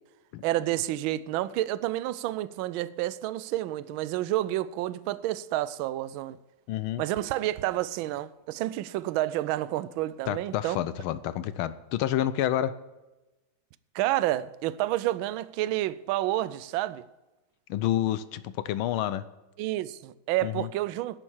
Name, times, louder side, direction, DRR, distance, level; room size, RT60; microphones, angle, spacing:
voice 1, 0.4-6.4 7.0-10.8 13.9-17.0 19.6-21.2, right 15 dB, 75° right, 1.3 m, -29 dB
voice 2, 6.7-7.0 10.3-12.7 17.7-19.3 20.4-20.7, left 12 dB, 80° left, 1.5 m, -29 dB
11.0 x 9.0 x 7.2 m
omnidirectional pair, 2.3 m